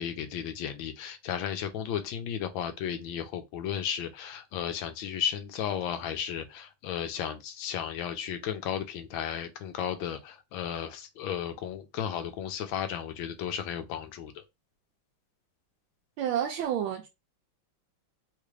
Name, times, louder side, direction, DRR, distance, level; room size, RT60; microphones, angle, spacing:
voice 1, 0.0-14.4, left 9 dB, 80° left, 1.4 m, -34 dB
voice 2, 16.2-17.1, right 9 dB, 80° right, 1.4 m, -29 dB
3.7 x 2.4 x 3.1 m
omnidirectional pair, 2.2 m